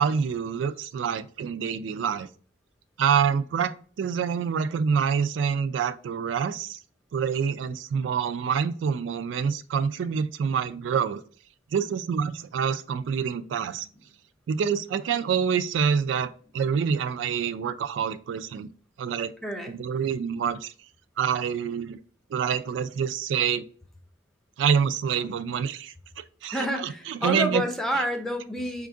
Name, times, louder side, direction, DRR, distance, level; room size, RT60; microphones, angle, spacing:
voice 1, 0.0-2.3 3.0-6.8 7.1-11.2 11.7-13.9 14.5-18.7 19.0-19.3 19.7-20.7 21.2-22.0 22.3-23.6 24.6-25.9 26.4-27.6, right 7 dB, 80° right, 10 dB, 0.3 m, -26 dB
voice 2, 19.4-19.7 26.5-28.9, equal, ahead, 3 dB, 0.5 m, -29 dB
4.3 x 2.4 x 3.7 m, 0.43 s
head